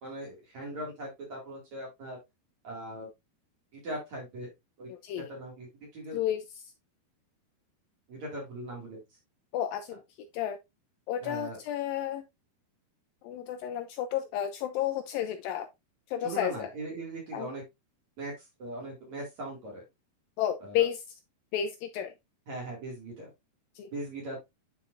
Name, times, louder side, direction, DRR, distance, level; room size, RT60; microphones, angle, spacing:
voice 1, 0.0-2.2 2.6-3.1 3.7-4.5 4.8-4.9 5.2-5.7 5.9-6.2 8.1-9.0 11.2-11.6 16.2-17.6 18.2-19.8 20.6-20.9 22.5-23.3 23.9-24.4, right 1 dB, 50° right, 3.2 m, -39 dB
voice 2, 4.9-5.3 6.1-6.7 9.5-10.6 11.1-12.2 13.2-15.7 16.1-16.7 17.3-17.5 20.4-21.2 21.5-22.1 23.8-23.9, left 10 dB, 80° left, 2.1 m, -32 dB
10.0 x 4.6 x 2.5 m
omnidirectional pair, 4.5 m